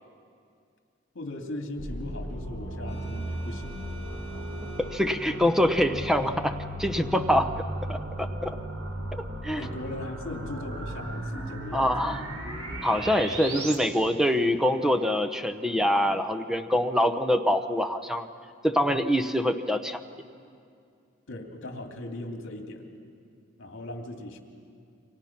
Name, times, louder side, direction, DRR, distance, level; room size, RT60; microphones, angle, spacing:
voice 1, 1.1-3.8 7.2-7.3 9.5-12.2 21.3-22.9 23.6-24.4, left 1 dB, 60° left, 3 dB, 2.6 m, -38 dB
sound 1, 1.8-13.8, right 1 dB, 75° right, 3.6 m, -36 dB
sound 2, 2.9-6.8, right 2 dB, 25° left, 7.5 m, -51 dB
voice 2, 4.9-7.5 7.9-8.6 9.4-9.6 11.7-12.2 12.8-18.3 18.6-20.0, equal, ahead, 9 dB, 0.9 m, -25 dB
29.5 x 25.0 x 5.9 m, 2.3 s
head